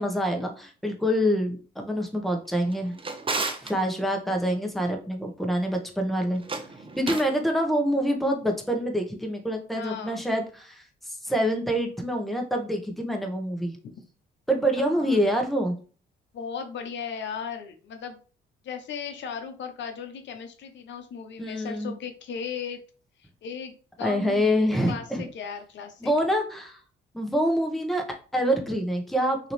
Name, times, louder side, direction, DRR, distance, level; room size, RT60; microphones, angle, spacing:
voice 1, 0.0-2.9 3.6-6.4 7.0-13.8 14.5-15.7 21.4-21.9 24.0-25.2 26.0-26.8 27.1-29.5, equal, ahead, 2 dB, 1.1 m, -26 dB
Drawer open or close, 2.6-3.7 6.3-7.4, right 3 dB, 25° right, 0.8 m, -32 dB
voice 2, 9.7-10.2 14.9-15.2 16.3-18.2 18.6-22.8 23.2-24.6 24.9-26.1, left 6 dB, 65° left, 6 dB, 0.8 m, -37 dB
5.9 x 2.9 x 3.2 m, 0.37 s
cardioid pair, 90°, 20 cm